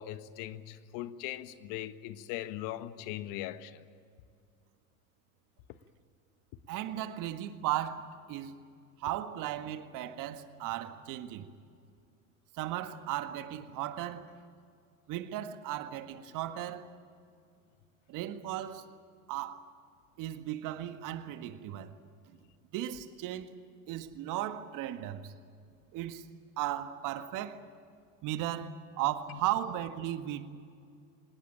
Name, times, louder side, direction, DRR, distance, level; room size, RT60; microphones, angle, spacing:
voice 1, 0.0-3.8 29.3-29.4, left 13 dB, 55° left, 1.5 m, -40 dB
voice 2, 6.7-8.5 9.0-11.5 12.6-14.3 15.1-16.9 18.1-18.9 19.3-19.6 20.2-21.9 22.7-23.6 23.9-25.3 25.9-26.2 26.6-27.6 28.2-30.5, right 12 dB, 50° right, 1.8 m, -36 dB
25.5 x 19.5 x 8.9 m
hypercardioid pair, 85°, 41 cm